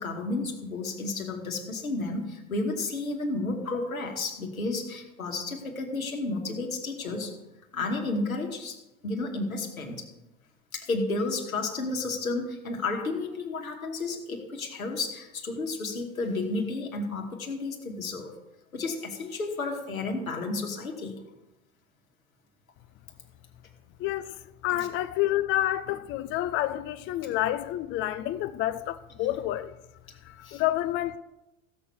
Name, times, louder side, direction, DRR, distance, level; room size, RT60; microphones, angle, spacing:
voice 1, 0.0-7.4 7.7-8.8 9.0-10.1 10.7-18.3 18.7-21.2 24.7-24.9 27.2-27.3 30.4-30.6, left 3 dB, 80° left, 2.5 m, -32 dB
voice 2, 24.0-29.7 30.2-31.2, left 14 dB, 30° left, 0.5 m, -29 dB
16.0 x 7.1 x 6.3 m
figure-of-eight pair, 80°, 41 cm